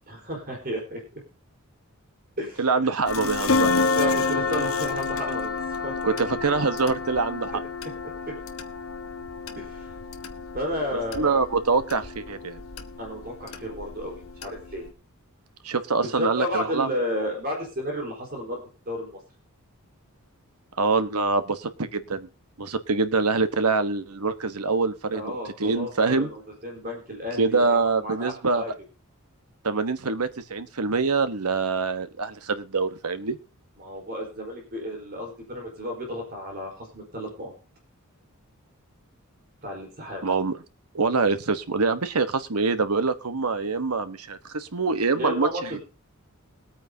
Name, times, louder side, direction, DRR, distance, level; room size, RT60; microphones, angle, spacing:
voice 1, 0.1-1.2 2.4-2.7 3.7-6.1 9.6-9.9 10.5-11.4 13.0-14.9 16.0-19.2 25.1-28.7 33.8-37.5 39.6-40.2 45.1-45.8, equal, 45° right, 1 dB, 4.3 m, -33 dB
voice 2, 2.6-3.7 6.0-7.6 11.1-12.6 15.6-16.9 20.8-22.3 22.6-26.3 27.4-28.6 29.6-33.4 40.2-40.6 40.9-45.8, right 4 dB, 85° right, 10 dB, 1.2 m, -25 dB
sound 1, 3.1-14.9, left 4 dB, 65° left, 1.2 m, -29 dB
21.5 x 9.0 x 2.8 m, 0.34 s
head